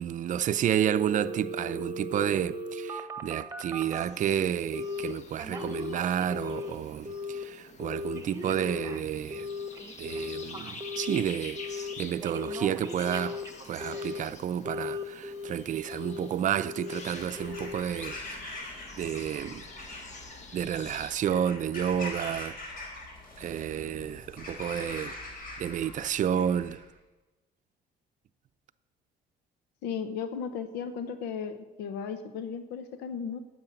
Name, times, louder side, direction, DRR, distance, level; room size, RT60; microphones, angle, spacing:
voice 1, 0.0-9.5 10.0-13.4 13.7-18.2 18.5-18.7 19.0-19.7 20.5-22.8 23.4-25.2 25.6-26.8, right 9 dB, 50° right, 0.6 m, -30 dB
Telephone, 0.8-4.1 4.7-5.1 5.4-6.7 7.1-7.4 7.8-11.2 11.6-11.9 12.2-14.3 14.7-15.5 15.9-16.3 16.6-17.0 17.4-17.8 18.1-18.2, left 2 dB, 20° right, 1.3 m, -37 dB
sound 1, 3.8-21.1, left 4 dB, 45° left, 1.4 m, -48 dB
Bird vocalization bird call bird song / Crow, 17.0-26.9, left 2 dB, 60° left, 4.2 m, -43 dB
voice 2, 29.8-33.4, left 6 dB, 90° left, 0.9 m, -35 dB
9.9 x 7.9 x 9.2 m
cardioid pair, 110°, 17 cm